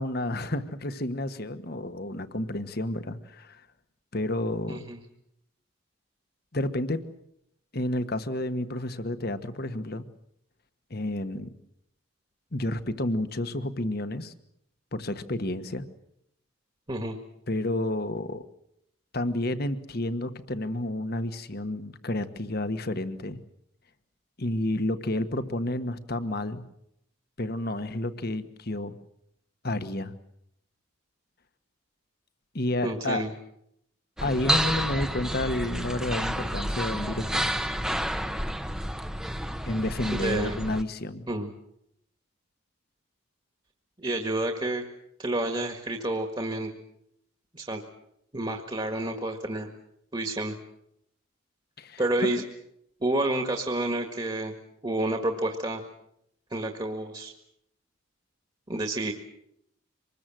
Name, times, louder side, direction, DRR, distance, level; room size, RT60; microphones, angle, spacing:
voice 1, 0.0-3.6 4.1-4.8 6.5-7.0 7.7-10.0 10.9-11.5 12.5-14.3 14.9-15.8 17.5-18.4 19.1-23.4 24.4-26.6 27.4-29.0 29.6-30.1 32.5-33.2 34.2-37.5 39.6-41.3 51.8-52.3, left 1 dB, 45° left, 11 dB, 1.4 m, -30 dB
voice 2, 4.7-5.0 16.9-17.2 32.8-33.3 40.1-40.6 41.3-41.5 44.0-44.8 45.2-46.7 47.5-47.8 48.3-49.7 50.1-50.6 52.0-52.4 53.0-54.5 54.8-55.8 56.5-57.3 58.7-59.1, right 1 dB, 25° right, 4 dB, 1.8 m, -29 dB
sound 1, 34.2-40.8, equal, 5° right, 1.0 m, -30 dB
25.5 x 21.0 x 7.8 m, 0.77 s
head